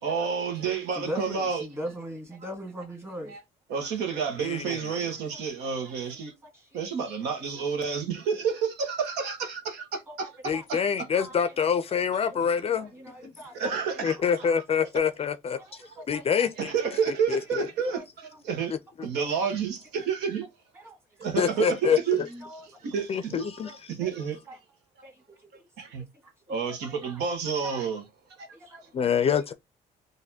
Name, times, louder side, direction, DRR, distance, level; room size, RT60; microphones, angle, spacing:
voice 1, 0.0-1.6 3.3-3.4 3.7-6.3 6.7-11.1 13.6-14.4 16.0-16.1 16.6-18.7 19.0-20.5 21.2-22.2 22.8-24.4 25.8-26.0 26.5-28.0 28.4-28.8, right 6 dB, 85° right, 1.1 m, -30 dB
voice 2, 1.0-3.4 4.7-5.0 5.3-5.4 5.8-5.9 6.5-6.6 10.1-10.6 11.2-12.0 12.8-13.5 14.4-14.5 15.5-16.5 17.9-18.0 19.1-19.4 20.7-21.0 22.2-22.6 23.6-24.1 24.5-24.6 25.0-25.1 25.4-25.7 26.2-26.3 26.6-27.2 28.5-28.9, equal, 15° right, 1.8 m, -41 dB
voice 3, 4.4-4.8 10.4-12.9 14.0-15.6 16.1-16.7 17.3-17.7 21.4-22.0 23.1-23.7 28.9-29.5, left 7 dB, 35° left, 0.4 m, -26 dB
4.1 x 2.6 x 2.7 m
cardioid pair, 110°, 17 cm